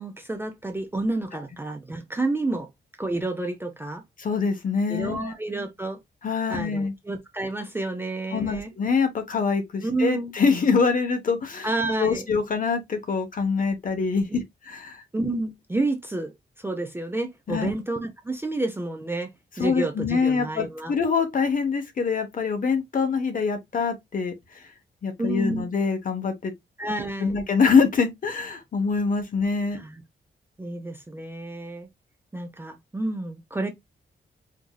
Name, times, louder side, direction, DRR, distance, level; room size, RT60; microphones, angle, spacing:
voice 1, 0.0-2.7 3.0-4.0 4.9-6.0 6.5-8.7 9.8-10.3 11.6-12.3 14.3-14.4 15.1-16.3 16.6-19.3 19.6-20.9 25.2-25.7 26.8-27.4 29.7-30.0 30.6-31.9 32.3-33.7, right 2 dB, 10° right, 0.4 m, -29 dB
voice 2, 4.2-5.3 6.2-6.9 8.3-11.7 12.0-15.0 17.5-17.7 19.6-24.6 25.0-26.5 27.2-29.8, left 5 dB, 45° left, 0.8 m, -24 dB
4.6 x 2.6 x 2.2 m
wide cardioid pair, 180°, 19 cm